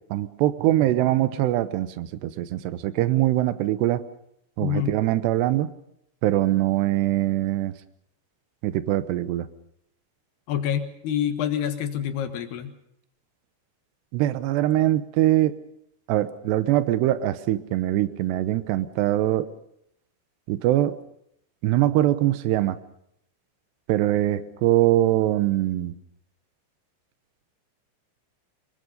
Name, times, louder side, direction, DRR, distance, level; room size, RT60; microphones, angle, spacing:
voice 1, 0.1-4.0 4.6-5.7 6.2-7.7 8.6-9.5 14.1-15.5 16.1-19.5 20.5-21.0 21.6-22.8 23.9-25.9, right 14 dB, 75° right, 13 dB, 2.6 m, -22 dB
voice 2, 4.6-5.0 10.5-12.7, left 9 dB, 65° left, 8 dB, 2.9 m, -27 dB
25.5 x 22.5 x 5.4 m, 0.74 s
omnidirectional pair, 6.0 m